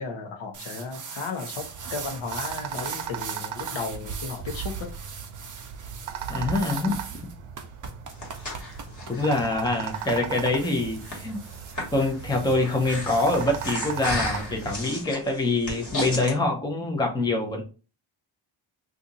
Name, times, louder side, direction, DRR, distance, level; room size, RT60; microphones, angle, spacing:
voice 1, 0.0-4.9, left 4 dB, 70° left, 4 dB, 0.9 m, -34 dB
sound 1, 0.5-13.7, right 5 dB, 40° right, 0.6 m, -41 dB
sound 2, 1.6-14.8, right 9 dB, 80° right, 0.6 m, -37 dB
voice 2, 6.3-7.0 9.1-11.4 11.9-17.6, left 2 dB, 10° left, 1 dB, 0.6 m, -25 dB
Breathing, 7.8-16.3, left 2 dB, 35° left, 1.4 m, -35 dB
2.8 x 2.5 x 3.8 m, 0.34 s
wide cardioid pair, 135°, 49 cm